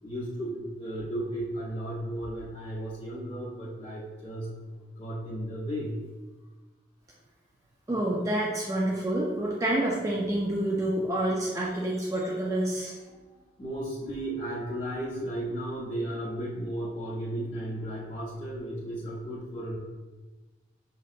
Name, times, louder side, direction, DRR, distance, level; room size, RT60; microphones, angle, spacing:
voice 1, 0.0-6.0 13.1-19.8, right 1 dB, 25° left, -8 dB, 0.7 m, -35 dB
voice 2, 7.9-12.9, right 1 dB, 15° right, -3 dB, 0.4 m, -28 dB
6.2 x 2.8 x 2.4 m, 1.2 s
head